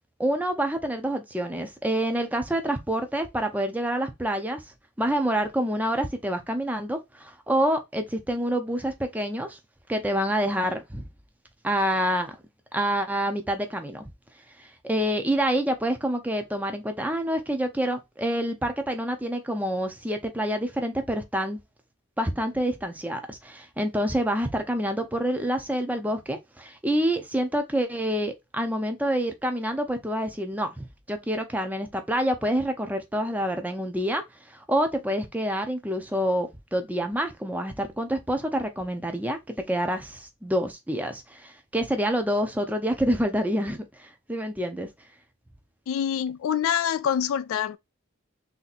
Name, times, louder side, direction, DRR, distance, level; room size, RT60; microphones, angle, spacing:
voice 1, 0.2-4.6 5.0-9.6 9.9-11.0 11.6-12.4 12.7-14.0 14.6-21.6 22.2-44.9, equal, 5° right, 0.6 m, -27 dB
voice 2, 45.9-47.8, left 9 dB, 80° left, 0.3 m, -26 dB
3.4 x 2.8 x 4.1 m
head